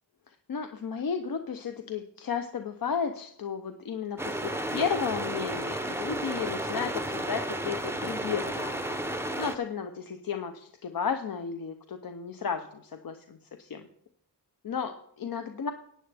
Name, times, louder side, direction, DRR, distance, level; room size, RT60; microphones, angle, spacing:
voice 1, 0.5-8.8 9.4-13.8 14.6-15.7, left 6 dB, 55° left, 6 dB, 0.7 m, -33 dB
sound 1, 4.2-9.6, right 1 dB, 5° right, 0.6 m, -32 dB
15.5 x 8.9 x 3.4 m, 0.71 s
wide cardioid pair, 150°, 42 cm